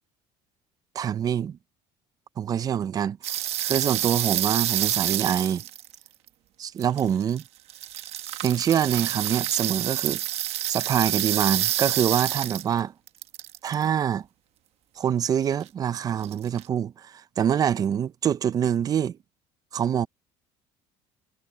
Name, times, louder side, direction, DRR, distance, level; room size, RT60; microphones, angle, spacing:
voice 1, 0.9-1.6 2.4-5.6 6.6-7.4 8.4-10.2 10.7-12.9 13.6-14.3 15.0-19.2 19.7-20.1, right 9 dB, 30° right, 0.5 m, -25 dB
sound 1, 3.2-6.3 6.8-7.4 7.7-12.8 13.1-13.8 16.2-16.7, right 13 dB, 55° right, 1.2 m, -28 dB
cardioid pair, 150°, 13 cm